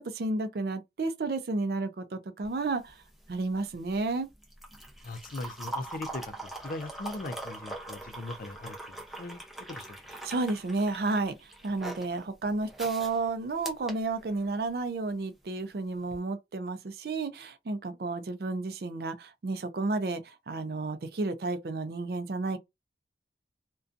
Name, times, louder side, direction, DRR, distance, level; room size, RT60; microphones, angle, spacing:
voice 1, 0.0-3.0 3.3-4.3 10.2-22.6, right 3 dB, 60° right, 0.4 m, -32 dB
sound 1, 2.4-14.8 16.0-16.2, right 2 dB, ahead, 0.5 m, -43 dB
voice 2, 5.0-10.0, left 2 dB, 50° left, 0.4 m, -40 dB
2.5 x 2.2 x 2.4 m
head